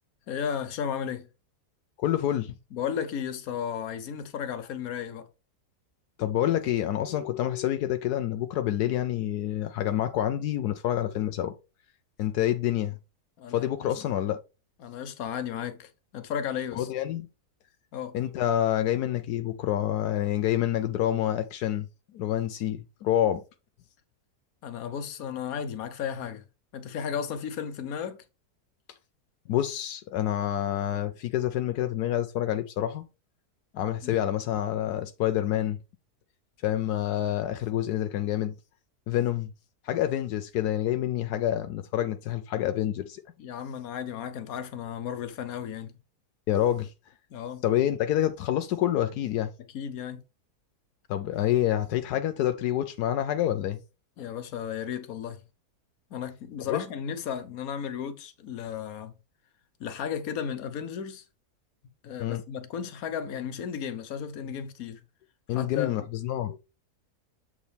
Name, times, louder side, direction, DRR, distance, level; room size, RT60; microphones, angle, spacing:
voice 1, 0.3-1.3 2.7-5.3 13.4-13.9 14.8-16.9 17.9-18.2 24.6-26.4 26.7-28.2 34.0-34.1 43.4-46.0 47.3-47.6 49.7-50.2 54.2-55.4 56.1-59.2 59.8-61.2 62.0-65.0 65.5-65.9, left 8 dB, 70° left, 1.3 m, -34 dB
voice 2, 2.0-2.5 6.2-11.5 12.2-13.0 13.5-14.4 16.7-17.3 18.1-21.9 22.1-23.4 29.5-33.0 33.7-35.8 36.6-38.5 39.1-39.5 39.8-43.2 46.5-46.9 47.6-49.5 51.1-53.8 56.7-56.8 62.2-62.4 65.5-66.6, left 12 dB, 85° left, 1.2 m, -27 dB
7.7 x 5.0 x 3.4 m
omnidirectional pair, 1.7 m